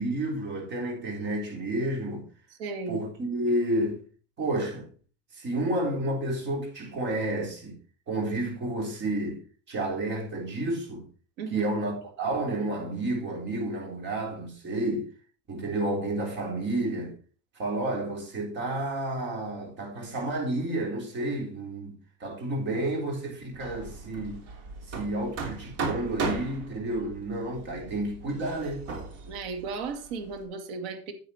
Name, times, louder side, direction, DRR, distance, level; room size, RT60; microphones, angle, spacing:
voice 1, 0.0-2.3 2.9-4.0 4.4-4.9 5.3-7.8 8.1-9.4 9.7-11.1 11.5-15.1 15.5-17.2 17.6-24.4 24.9-28.8, right 1 dB, 35° right, 3.9 m, -30 dB
voice 2, 2.5-3.0 11.4-11.7 29.3-31.1, right 4 dB, 80° right, 2.4 m, -35 dB
Hammer, 23.5-30.4, right 4 dB, 50° right, 3.2 m, -37 dB
9.5 x 8.5 x 4.3 m
cardioid pair, 145°, 31 cm